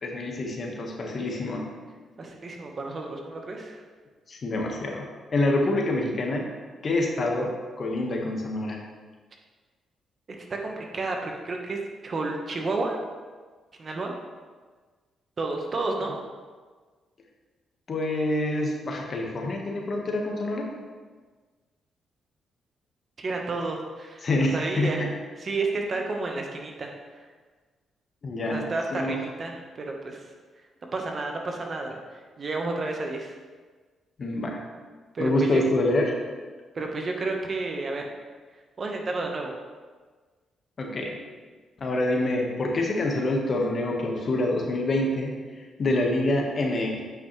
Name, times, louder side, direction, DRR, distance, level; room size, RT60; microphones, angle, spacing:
voice 1, 0.0-1.7 4.3-5.0 5.3-6.5 6.8-8.8 17.9-20.7 24.2-25.1 28.2-28.6 28.9-29.2 34.2-34.6 35.2-36.1 40.8-41.2 41.8-47.1, left 1 dB, 50° left, 0 dB, 1.4 m, -26 dB
voice 2, 2.2-3.8 10.4-13.0 13.8-14.2 15.4-16.2 23.2-24.3 24.5-25.1 25.4-27.2 28.4-30.3 30.9-33.4 35.1-35.6 36.7-38.1 38.8-39.5, right 3 dB, 45° right, 1 dB, 1.2 m, -31 dB
8.7 x 5.7 x 3.2 m, 1.4 s
cardioid pair, 75°, 0 cm